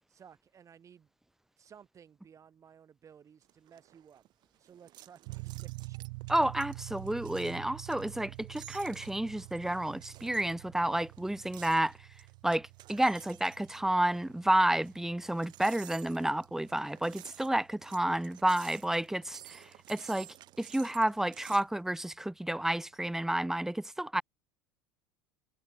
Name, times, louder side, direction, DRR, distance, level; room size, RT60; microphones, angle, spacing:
voice 1, 0.1-1.1 1.6-4.2 4.6-6.1, right 8 dB, 35° right, 3.7 m, -57 dB
sound 1, 3.4-21.7, right 15 dB, 50° right, 0.8 m, -53 dB
sound 2, 5.3-19.7, right 29 dB, 70° right, 0.4 m, -48 dB
voice 2, 6.3-12.0 12.4-20.3 20.6-24.2, right 1 dB, 5° right, 0.5 m, -30 dB
hypercardioid pair, 85°, 9 cm